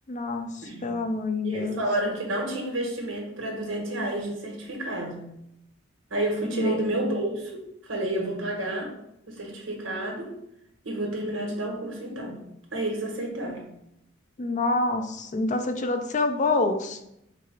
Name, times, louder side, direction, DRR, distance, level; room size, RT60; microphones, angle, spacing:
voice 1, 0.1-0.5 0.8-1.8 6.5-6.8 14.4-17.0, left 2 dB, 40° left, 6 dB, 0.4 m, -26 dB
voice 2, 0.6-0.9 1.4-5.2 6.1-8.9 9.3-10.3 10.8-12.4 12.7-13.6, right 1 dB, 90° right, 0 dB, 1.4 m, -30 dB
4.8 x 2.3 x 4.7 m, 0.80 s
head